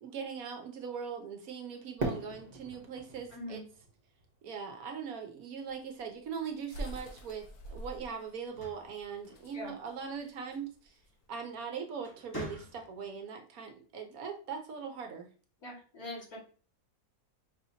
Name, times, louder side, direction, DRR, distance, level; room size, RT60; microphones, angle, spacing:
voice 1, 0.0-3.6 4.4-11.0 11.3-15.3, right 6 dB, 70° right, 4 dB, 1.1 m, -41 dB
Fireworks, 2.0-5.0, right 2 dB, 40° right, 1.3 m, -40 dB
voice 2, 3.3-3.6 9.5-9.7 15.6-16.4, left 1 dB, 60° left, -4 dB, 2.4 m, -42 dB
sound 1, 5.7-11.2, right 1 dB, 80° left, 1.3 m, -46 dB
sound 2, 8.3-9.9 11.3-11.6 12.0-13.2, left 2 dB, 15° left, 1.1 m, -46 dB
5.5 x 2.8 x 2.7 m, 0.39 s
omnidirectional pair, 1.7 m